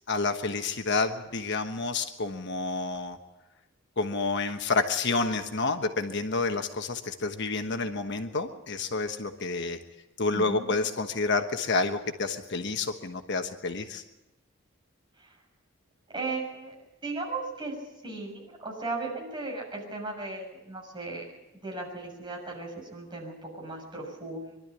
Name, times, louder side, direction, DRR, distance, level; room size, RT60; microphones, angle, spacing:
voice 1, 0.1-3.2 4.0-9.8 10.2-14.0, left 3 dB, 55° left, 6 dB, 1.3 m, -29 dB
voice 2, 10.3-10.6 15.2-15.3 16.1-16.7 17.0-17.7 18.0-21.3 21.6-24.6, right 3 dB, 25° right, -2 dB, 6.9 m, -36 dB
23.5 x 12.5 x 9.9 m, 1.0 s
head